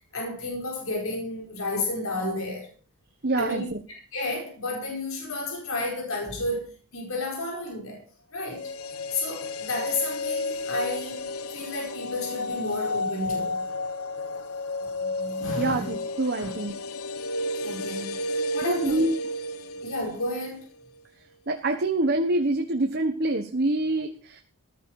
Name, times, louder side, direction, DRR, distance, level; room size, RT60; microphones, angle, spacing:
voice 1, 0.1-2.7 3.4-6.7 6.9-8.0 8.3-8.7 9.1-13.6 14.9-15.9 16.3-16.5 17.6-19.0 19.8-20.7, left 2 dB, 70° left, 4.9 m, -32 dB
voice 2, 3.2-3.8 15.5-16.8 18.6-19.1 21.5-24.4, right 2 dB, 50° right, 1.3 m, -26 dB
sound 1, 8.4-20.6 20.8-20.9, left 2 dB, 85° left, 1.0 m, -32 dB
15.0 x 12.0 x 4.8 m
head